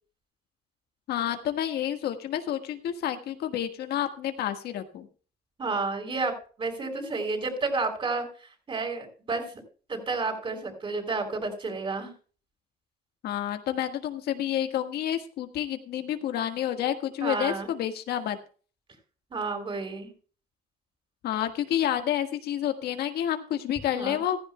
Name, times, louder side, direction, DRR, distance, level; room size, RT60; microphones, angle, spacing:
voice 1, 1.1-5.1 13.2-18.4 21.2-24.4, left 11 dB, 70° left, 7 dB, 1.5 m, -29 dB
voice 2, 5.6-6.3 6.6-8.2 8.7-9.5 9.9-12.1 17.2-17.7 19.3-20.1 24.0-24.2, right 3 dB, 30° right, 6 dB, 5.3 m, -30 dB
15.5 x 14.5 x 2.2 m, 0.39 s
cardioid pair, 110°, 17 cm